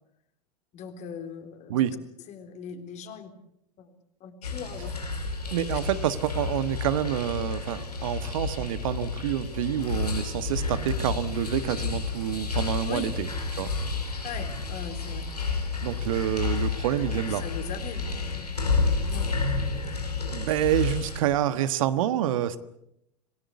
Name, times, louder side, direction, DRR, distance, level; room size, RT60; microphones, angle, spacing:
voice 1, 0.7-1.9 2.3-3.3 3.8-3.9 4.2-5.0 5.5-5.8 12.9-13.2 14.2-15.3 17.0-18.1 19.1-19.3, left 7 dB, 35° left, 8 dB, 3.7 m, -40 dB
sound 1, 4.4-21.2, left 4 dB, 85° left, 5.3 m, -30 dB
voice 2, 5.5-13.3 13.6-13.7 15.8-17.4 20.3-22.6, right 11 dB, 60° right, 13 dB, 1.4 m, -27 dB
27.0 x 18.0 x 8.3 m, 0.79 s
figure-of-eight pair, 90°, 20 cm